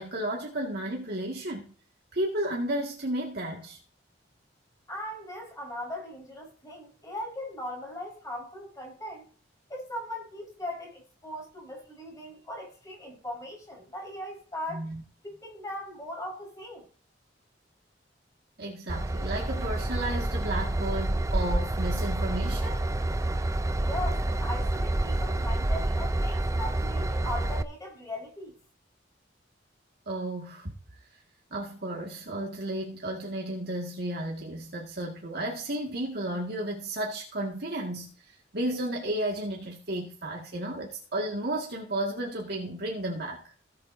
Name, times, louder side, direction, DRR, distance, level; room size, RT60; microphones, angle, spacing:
voice 1, 0.0-1.7 2.1-3.8 14.7-15.0 18.6-22.8 30.1-30.7 31.5-38.1 38.5-43.4, right 1 dB, 60° right, 2.0 m, -33 dB
voice 2, 4.9-9.2 9.7-14.9 15.2-16.8 23.8-28.5, left 1 dB, 20° left, 4.8 m, -39 dB
Train / Engine, 18.9-27.6, right 1 dB, 15° right, 0.5 m, -28 dB
17.0 x 8.0 x 2.7 m
head